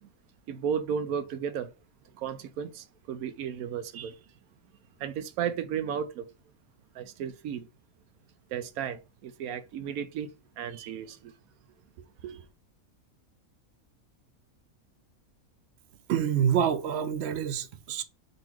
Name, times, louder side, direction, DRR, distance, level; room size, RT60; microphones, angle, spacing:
voice 1, 0.5-1.7 2.1-4.1 5.0-6.3 6.9-7.7 8.5-11.3 12.2-12.5, right 8 dB, 85° right, 1.1 m, -34 dB
voice 2, 16.1-18.0, right 8 dB, 60° right, 0.7 m, -27 dB
3.9 x 2.9 x 4.6 m
omnidirectional pair, 1.5 m